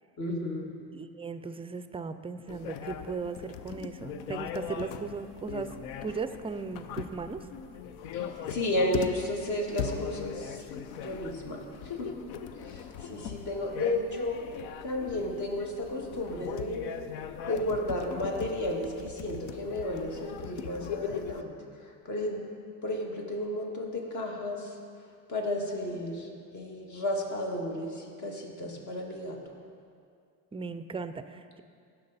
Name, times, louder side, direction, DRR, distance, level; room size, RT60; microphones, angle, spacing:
voice 1, 0.2-0.7 8.1-10.6 10.9-11.6 12.0-12.1 12.6-14.5 14.8-16.9 17.5-21.6 21.8-22.4 22.8-24.7 25.3-29.4, left 1 dB, 50° left, 0 dB, 2.0 m, -33 dB
voice 2, 0.9-5.8 6.0-7.5 30.5-31.6, right 4 dB, 15° right, 11 dB, 0.4 m, -37 dB
sound 1, 2.5-21.4, left 7 dB, 85° left, 0.6 m, -40 dB
16.5 x 5.9 x 4.1 m, 2.3 s
cardioid pair, 105°, 37 cm